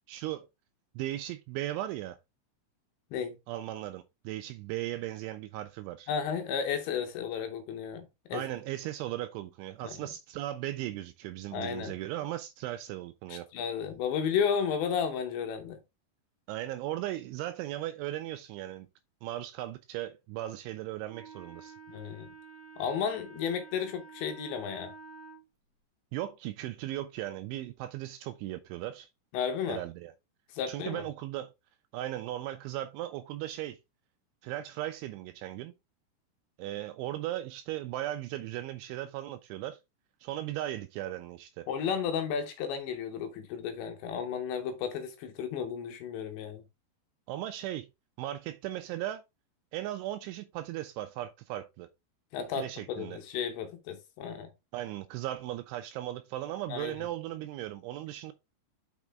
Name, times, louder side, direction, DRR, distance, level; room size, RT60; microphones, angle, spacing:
voice 1, 0.1-0.5 1.0-2.2 3.5-6.1 8.3-13.5 16.5-18.9 19.2-21.7 26.1-29.1 29.7-30.1 30.7-31.5 31.9-33.8 34.4-35.7 36.6-39.8 40.2-41.7 47.3-47.9 48.2-49.2 49.7-51.9 52.6-53.2 54.7-58.3, right 14 dB, 85° right, 2.7 m, -37 dB
voice 2, 6.1-8.4 9.8-9.9 11.5-11.9 13.3-15.8 21.9-22.3 22.8-24.9 29.3-29.8 30.5-31.0 41.7-46.6 52.3-54.5 56.7-57.0, left 7 dB, 80° left, 2.8 m, -33 dB
Wind instrument woodwind instrument, 21.1-25.4, right 4 dB, 55° right, 2.0 m, -49 dB
6.4 x 6.0 x 3.4 m
omnidirectional pair, 5.8 m